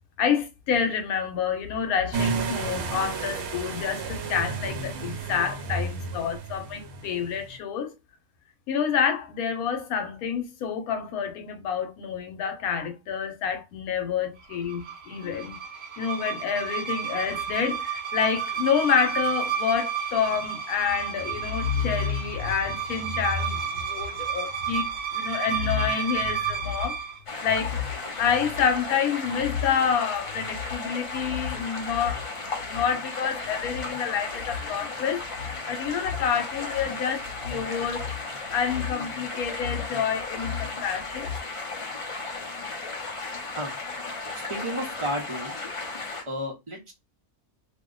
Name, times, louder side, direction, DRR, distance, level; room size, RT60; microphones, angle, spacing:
voice 1, 0.2-7.9 8.7-15.6 16.0-24.9 25.1-27.0 27.4-32.3 32.6-35.3 35.7-38.1 38.5-41.4, left 7 dB, 80° left, 1.1 m, -28 dB
sound 1, 2.1-7.6, right 4 dB, 80° right, 1.2 m, -32 dB
sound 2, 14.5-27.2, right 8 dB, 55° right, 0.8 m, -31 dB
sound 3, 27.3-46.2, left 3 dB, 45° left, 0.4 m, -35 dB
voice 2, 44.3-45.7 46.3-46.9, equal, 35° right, 0.5 m, -32 dB
2.8 x 2.1 x 3.7 m
omnidirectional pair, 1.5 m